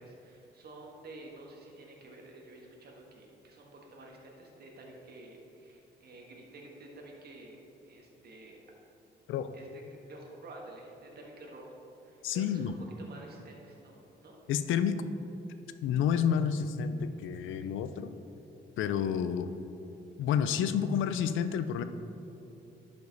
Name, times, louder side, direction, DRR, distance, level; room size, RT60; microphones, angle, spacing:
voice 1, 0.0-7.6 7.8-8.6 9.5-11.7 12.0-12.7 13.0-14.4, right 2 dB, 55° right, -1 dB, 1.5 m, -50 dB
voice 2, 12.2-12.7 14.5-15.0 15.8-18.1 18.8-19.5 20.2-21.8, left 8 dB, 80° left, 10 dB, 0.5 m, -29 dB
11.0 x 5.3 x 4.0 m, 3.0 s
cardioid pair, 90°, 20 cm